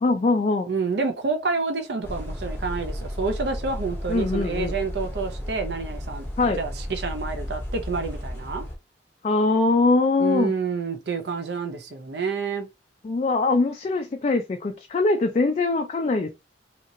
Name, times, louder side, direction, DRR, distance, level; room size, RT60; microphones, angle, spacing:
voice 1, 0.0-0.7 4.1-4.7 6.4-6.6 9.2-10.5 13.0-16.3, left 3 dB, 35° left, 0.3 m, -22 dB
voice 2, 0.7-8.7 10.2-12.7, right 4 dB, 65° right, 0.6 m, -28 dB
sound 1, 2.0-8.8, equal, 10° left, 0.7 m, -33 dB
2.9 x 2.8 x 2.6 m
head